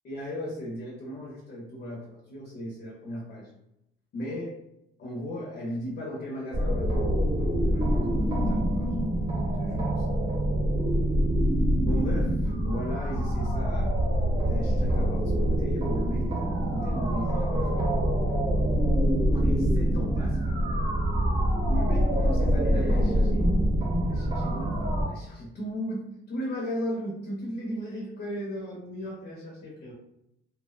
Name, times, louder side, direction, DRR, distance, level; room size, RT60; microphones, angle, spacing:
voice 1, 0.0-3.5 4.1-4.6 5.0-7.1 7.6-9.1 9.4-10.3 11.9-14.0 14.4-17.9 19.2-20.7 21.7-23.5 24.1-29.9, equal, 60° left, -3 dB, 0.7 m, -37 dB
sound 1, 6.5-25.1, equal, 25° right, 0.8 m, -25 dB
2.6 x 2.1 x 2.3 m, 0.82 s
cardioid pair, 90°, 20 cm